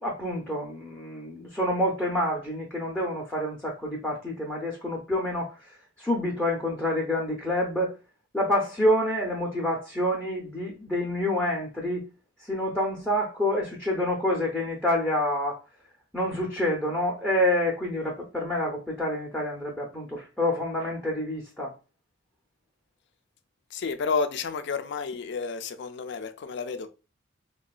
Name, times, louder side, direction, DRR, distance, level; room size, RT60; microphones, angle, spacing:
voice 1, 0.0-5.6 6.0-7.9 8.3-12.0 12.4-15.6 16.1-21.7, left 1 dB, 5° left, 0.5 m, -27 dB
voice 2, 23.7-26.9, left 5 dB, 60° left, 0.4 m, -31 dB
3.8 x 2.2 x 2.3 m
head